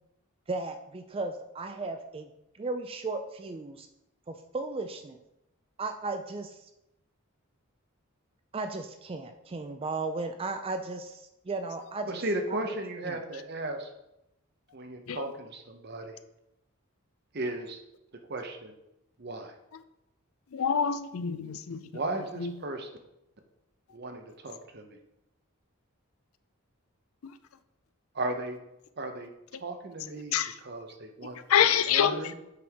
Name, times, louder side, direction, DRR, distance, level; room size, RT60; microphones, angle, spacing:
voice 1, 0.5-2.3 2.6-3.9 4.3-5.2 5.8-6.6 8.5-12.2 12.7-12.8 13.0-13.2, right 3 dB, 25° right, 7 dB, 0.3 m, -35 dB
voice 2, 12.1-13.9 14.7-16.2 17.3-17.8 18.3-18.7 19.2-19.5 21.9-22.9 23.9-25.0 28.1-28.6 29.0-29.3 29.6-30.4 30.6-31.4 31.9-32.3, right 2 dB, 50° right, 5 dB, 0.8 m, -35 dB
voice 3, 20.5-21.8 22.4-22.5 27.2-27.3 30.3-30.5 31.5-32.3, left 8 dB, 75° left, 12 dB, 0.4 m, -26 dB
7.6 x 5.4 x 3.5 m, 0.88 s
head